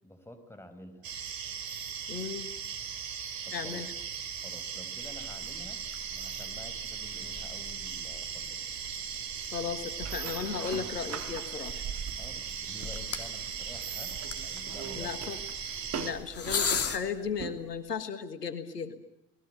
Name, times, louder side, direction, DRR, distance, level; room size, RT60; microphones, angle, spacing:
voice 1, 0.0-1.2 3.4-4.0 4.4-5.8 6.1-8.7 12.1-15.3, equal, 5° left, 8 dB, 5.2 m, -50 dB
sound 1, 1.0-16.1, right 7 dB, 45° right, 4.1 m, -38 dB
voice 2, 2.1-2.5 3.5-3.9 9.5-11.8 15.0-15.4 15.9-19.0, left 6 dB, 90° left, 11 dB, 1.8 m, -35 dB
sound 2, 5.0-17.0, left 6 dB, 30° left, 3.2 m, -40 dB
sound 3, 10.0-17.8, right 7 dB, 30° right, 2.2 m, -43 dB
29.0 x 20.5 x 9.2 m, 0.83 s
hypercardioid pair, 70°, 47 cm